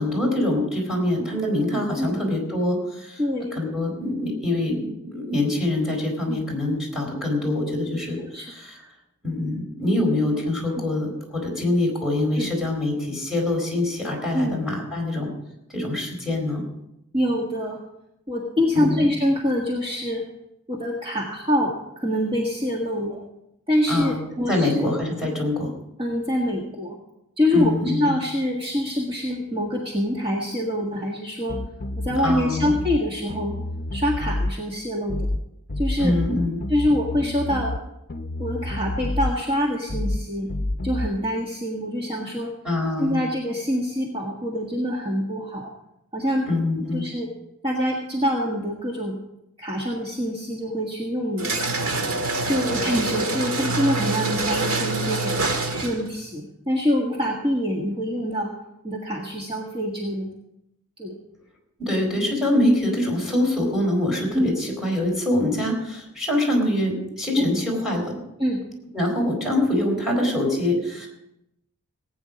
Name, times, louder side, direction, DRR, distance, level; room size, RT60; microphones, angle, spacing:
voice 1, 0.0-3.2 3.5-8.8 9.2-15.3 15.7-16.6 18.7-19.1 23.9-24.2 24.5-25.7 27.5-28.1 32.2-32.7 36.0-36.6 42.6-43.2 46.4-47.0 61.8-68.2 68.9-71.1, left 1 dB, ahead, -1 dB, 4.4 m, -24 dB
voice 2, 3.2-3.6 6.3-6.4 8.3-8.5 10.8-10.9 12.4-12.5 14.3-14.6 17.1-17.8 18.3-20.2 20.7-23.2 23.7-24.8 26.0-27.0 27.4-31.6 32.0-33.5 33.9-35.3 35.8-36.1 36.7-37.7 38.4-40.5 40.8-42.5 43.0-45.7 46.1-46.5 46.9-47.3 47.6-49.2 49.6-51.9 52.5-55.4 55.8-58.5 58.8-60.3 61.0-61.2 64.3-64.5 67.4-67.5 68.4-68.6, equal, 25° right, -2 dB, 1.6 m, -25 dB
sound 1, 31.5-33.0 33.3-34.5 35.1-35.4 35.7-37.8 38.1-39.3 39.9-40.2 40.5-41.1, left 1 dB, 45° left, 0.7 m, -28 dB
sound 2, 51.4-56.1, right 3 dB, 70° right, 1.7 m, -25 dB
18.0 x 9.2 x 5.2 m, 0.84 s
head